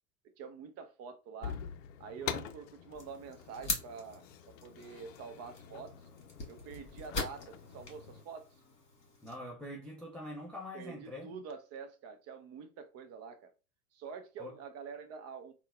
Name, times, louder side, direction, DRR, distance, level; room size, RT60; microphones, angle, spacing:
voice 1, 0.4-1.6 2.0-5.9 6.5-8.5 10.7-13.5 13.9-15.5, right 6 dB, 35° right, 0.7 m, -47 dB
sound 1, 1.4-8.2, left 8 dB, 55° left, 0.6 m, -45 dB
sound 2, 2.9-9.4, left 3 dB, 25° left, 1.6 m, -43 dB
voice 2, 9.2-11.4 14.4-14.5, left 1 dB, 5° left, 0.3 m, -44 dB
3.9 x 2.3 x 2.3 m
hypercardioid pair, 90°, 45 cm